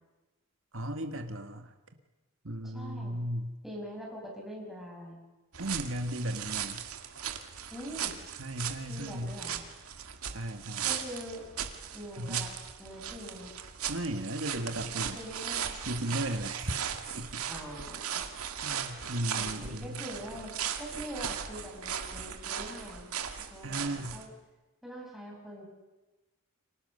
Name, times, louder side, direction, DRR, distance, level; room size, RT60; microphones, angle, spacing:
voice 1, 0.7-1.7 2.4-3.5 5.6-6.8 8.4-9.3 10.3-10.9 12.2-12.5 13.9-15.2 15.9-16.9 17.1-17.4 18.6-20.0 23.6-24.2, right 1 dB, 65° right, 6 dB, 1.7 m, -35 dB
voice 2, 2.6-3.2 3.6-5.2 7.7-8.1 8.9-9.6 10.8-11.5 11.9-13.5 15.1-15.7 17.4-19.1 19.4-20.5 20.8-23.1 23.5-24.3 24.8-25.7, equal, ahead, -2 dB, 6.7 m, -44 dB
sound 1, 5.5-24.2, right 8 dB, 85° right, 2.1 m, -38 dB
30.0 x 25.5 x 6.8 m, 1.1 s
head